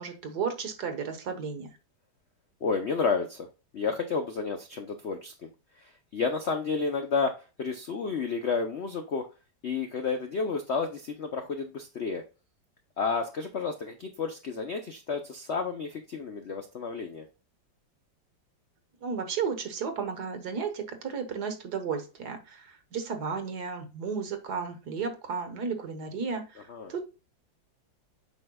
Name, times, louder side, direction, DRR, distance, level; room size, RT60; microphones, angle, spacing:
voice 1, 0.0-1.7 19.0-27.0, right 6 dB, 60° right, 7 dB, 1.6 m, -33 dB
voice 2, 2.6-3.5 3.7-5.5 5.8-7.3 7.6-9.3 9.6-12.2 13.0-17.2 26.7-26.9, left 5 dB, 65° left, 6 dB, 0.6 m, -31 dB
8.2 x 5.4 x 2.3 m, 0.32 s
omnidirectional pair, 2.1 m